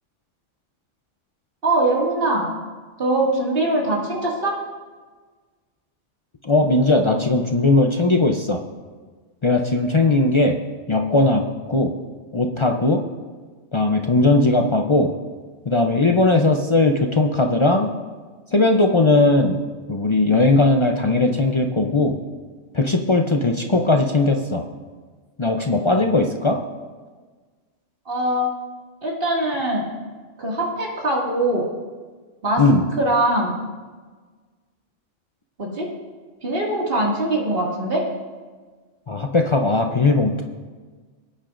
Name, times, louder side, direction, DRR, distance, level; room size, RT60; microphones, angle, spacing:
voice 1, 1.6-2.5 3.0-4.6 28.1-28.5 29.0-29.9 30.4-31.6 32.4-32.6 33.0-33.7 35.6-35.9 36.4-38.0, right 1 dB, 45° right, -3 dB, 2.3 m, -22 dB
voice 2, 6.4-8.6 9.4-10.6 10.9-11.9 12.3-13.0 13.7-15.1 15.7-17.9 18.5-19.6 19.9-22.1 22.7-24.6 25.4-26.6 32.6-32.9 39.1-40.4, left 2 dB, 50° left, 3 dB, 0.3 m, -18 dB
19.0 x 8.9 x 2.5 m, 1.4 s
omnidirectional pair, 1.4 m